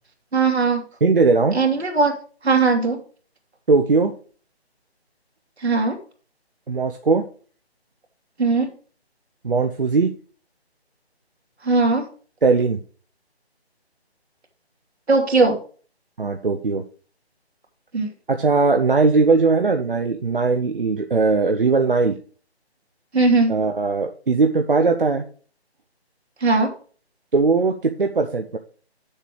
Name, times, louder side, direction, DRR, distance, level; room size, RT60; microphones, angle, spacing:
voice 1, 0.3-0.8 1.5-2.1 2.4-3.0 5.6-6.0 8.4-8.7 11.6-12.1 15.1-15.6 17.9-18.1 23.1-23.6 26.4-26.7, right 3 dB, 75° right, 2 dB, 2.6 m, -19 dB
voice 2, 1.0-1.6 3.7-4.1 6.7-7.2 9.4-10.1 12.4-12.8 16.2-16.8 18.3-22.2 23.5-25.2 27.3-28.6, right 4 dB, 55° right, 4 dB, 0.8 m, -19 dB
7.4 x 6.5 x 4.7 m, 0.41 s
hypercardioid pair, 180°, 33 cm